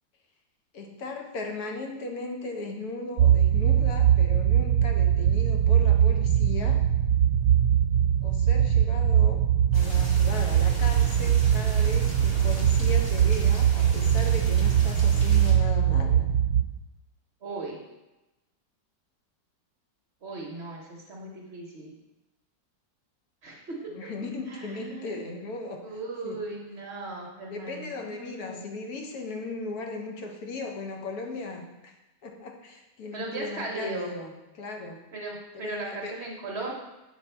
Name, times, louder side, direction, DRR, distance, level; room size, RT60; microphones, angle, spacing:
voice 1, 0.7-6.8 8.2-9.4 9.7-16.2 23.8-25.8 26.2-26.4 27.5-31.9 32.2-35.0 35.5-36.2, left 3 dB, 65° left, 2 dB, 1.2 m, -37 dB
sound 1, 3.2-16.6, right 9 dB, 75° right, 1.1 m, -21 dB
sound 2, 9.7-15.5, equal, 25° left, 0.9 m, -41 dB
voice 2, 17.4-17.8 20.2-21.9 23.4-24.1 24.5-25.1 25.8-28.7 33.1-34.1 35.1-36.7, right 2 dB, 50° right, -2 dB, 0.8 m, -37 dB
7.3 x 3.2 x 4.3 m, 1.0 s
omnidirectional pair, 1.9 m